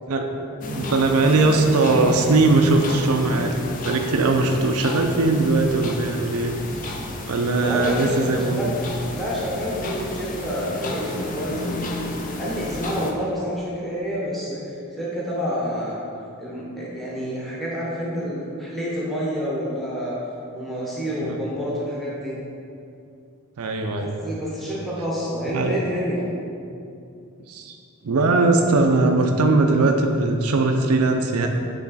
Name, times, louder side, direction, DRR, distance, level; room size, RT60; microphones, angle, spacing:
sound 1, 0.6-13.1, left 2 dB, 35° left, 0.5 m, -32 dB
voice 1, 0.7-3.5 3.8-6.5 7.3-8.7 21.2-21.4 23.6-24.2 25.5-25.8 27.5-27.8 28.0-31.5, right 3 dB, 85° right, 3 dB, 0.5 m, -20 dB
voice 2, 7.6-12.0 12.4-16.0 16.4-20.2 20.5-22.4 24.0-26.3, equal, ahead, -7 dB, 0.9 m, -28 dB
8.3 x 3.2 x 4.0 m, 2.5 s
head